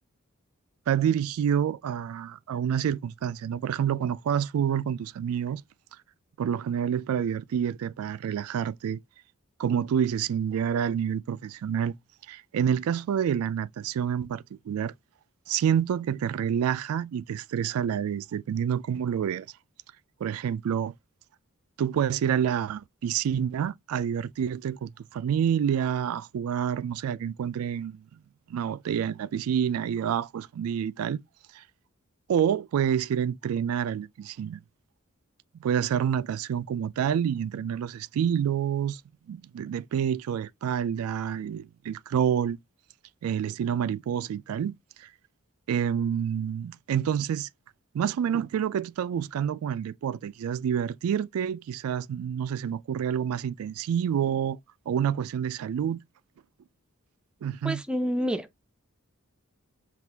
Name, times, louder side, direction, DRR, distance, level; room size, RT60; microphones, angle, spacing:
voice 1, 0.9-5.6 6.4-9.0 9.6-11.9 12.3-14.9 15.5-19.5 20.2-20.9 21.8-28.0 28.5-31.2 31.5-31.6 32.3-34.6 35.6-39.0 39.3-42.6 43.2-45.1 45.7-47.5 47.9-54.6 54.9-56.0 57.4-57.8, right 8 dB, 85° right, 0.3 m, -28 dB
voice 2, 57.6-58.7, equal, 5° right, 0.4 m, -29 dB
6.0 x 2.4 x 3.3 m
head